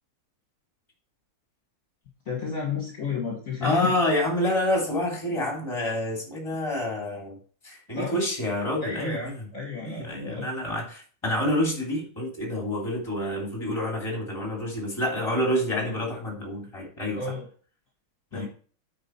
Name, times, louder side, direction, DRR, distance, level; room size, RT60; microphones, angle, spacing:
voice 1, 2.3-3.9 8.0-8.2 8.8-10.5 17.1-17.5 18.3-18.5, left 5 dB, 40° left, -2 dB, 2.0 m, -32 dB
voice 2, 3.6-7.4 7.6-9.5 9.8-17.2 18.3-18.5, left 1 dB, 15° left, -1 dB, 2.6 m, -28 dB
9.2 x 5.0 x 4.4 m, 0.42 s
omnidirectional pair, 2.3 m